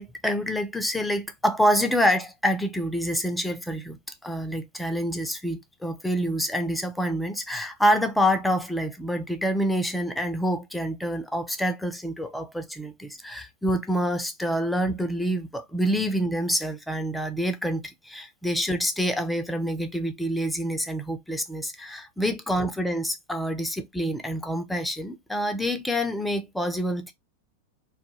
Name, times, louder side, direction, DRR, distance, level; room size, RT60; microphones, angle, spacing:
voice 1, 0.0-4.0 4.2-27.1, equal, 5° left, 0.4 m, -27 dB
2.2 x 2.1 x 2.9 m
figure-of-eight pair, 90°, 0 cm